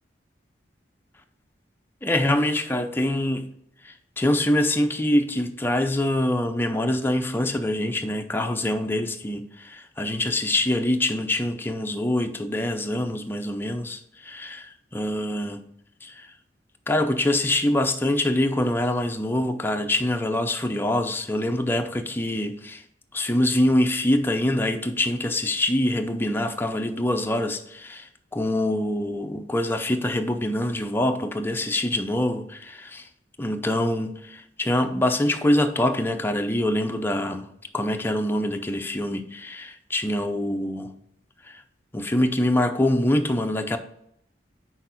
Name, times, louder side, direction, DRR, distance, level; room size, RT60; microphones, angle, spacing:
voice 1, 2.0-3.5 3.8-15.6 16.0-16.3 16.9-22.8 23.1-33.0 33.4-37.5 37.7-40.9 41.9-43.8, left 1 dB, 10° left, 0.5 m, -25 dB
6.2 x 4.5 x 4.4 m
head